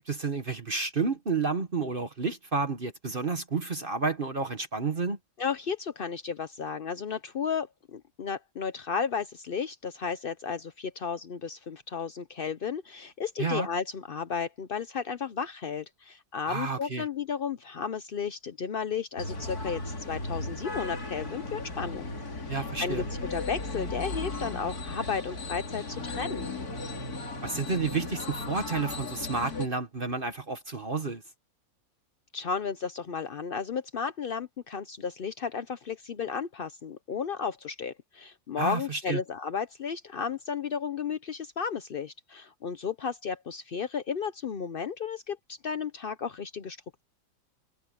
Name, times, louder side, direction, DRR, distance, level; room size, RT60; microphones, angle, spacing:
voice 1, 0.1-5.2 13.4-13.7 16.5-17.0 22.5-23.0 27.4-31.2 38.6-39.2, right 4 dB, 35° right, 1.2 m, -30 dB
voice 2, 5.4-22.1 22.5-23.0 23.3-26.5 32.3-46.8, left 6 dB, 75° left, 0.5 m, -33 dB
sound 1, 19.2-29.7, left 2 dB, 50° left, 3.4 m, -36 dB
omnidirectional pair, 2.0 m